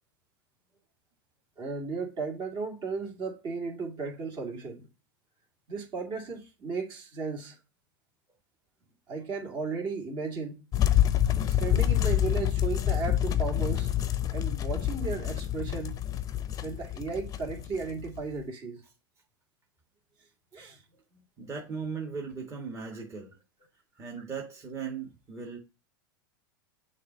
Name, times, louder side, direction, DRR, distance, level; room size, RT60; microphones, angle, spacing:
voice 1, 1.6-4.9 5.7-7.6 9.1-10.6 11.6-13.9 14.2-16.0 16.6-18.8 20.5-20.8 22.9-23.0, right 4 dB, 40° right, 2.2 m, -35 dB
sound 1, 10.7-18.3, left 11 dB, 30° left, 0.7 m, -27 dB
voice 2, 21.4-23.3 24.0-25.6, right 5 dB, 25° right, 1.7 m, -38 dB
6.5 x 2.8 x 5.5 m
hypercardioid pair, 100°, 12 cm